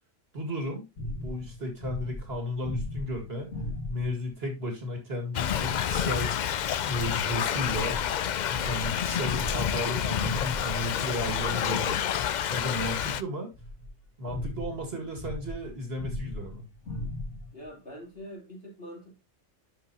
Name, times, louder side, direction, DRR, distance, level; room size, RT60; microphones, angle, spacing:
voice 1, 0.3-0.9 1.2-3.5 3.9-6.3 6.9-8.0 8.4-12.0 12.5-13.5 14.2-16.6, equal, 50° right, 2.3 m, -34 dB
sound 1, 1.0-4.3 6.8-11.0 13.5-17.7, left 1 dB, 65° left, 2.2 m, -38 dB
Thunder / Rain, 5.3-13.2, left 9 dB, 85° left, 0.4 m, -29 dB
voice 2, 17.5-19.2, equal, 50° left, 3.2 m, -44 dB
10.5 x 5.8 x 2.8 m
omnidirectional pair, 1.3 m